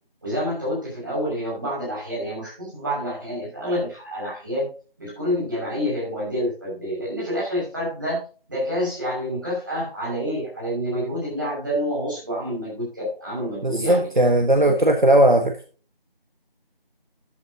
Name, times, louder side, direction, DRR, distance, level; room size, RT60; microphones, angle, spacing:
voice 1, 0.2-4.7 5.0-8.2 8.5-14.1 14.6-14.8, equal, 20° right, -6 dB, 6.0 m, -28 dB
voice 2, 13.6-15.6, right 1 dB, 55° right, 5 dB, 1.4 m, -17 dB
13.5 x 8.7 x 2.8 m, 0.37 s
figure-of-eight pair, 175°, 29 cm